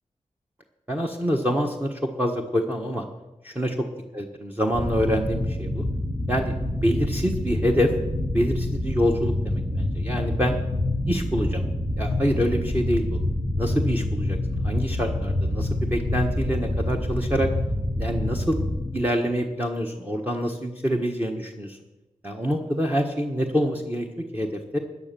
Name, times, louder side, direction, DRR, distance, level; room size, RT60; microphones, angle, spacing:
voice 1, 0.9-3.0 3.4-3.7 4.1-5.8 6.3-7.9 8.3-10.6 11.1-11.6 12.0-13.0 13.6-14.4 14.6-17.5 18.0-18.6 18.9-21.8 22.2-24.1 24.3-24.5 24.7-24.8, equal, 15° right, 0 dB, 1.3 m, -26 dB
sound 1, 4.7-18.9, left 1 dB, 45° right, 2.6 m, -27 dB
13.5 x 9.6 x 6.9 m, 1.0 s
wide cardioid pair, 70°, 14 cm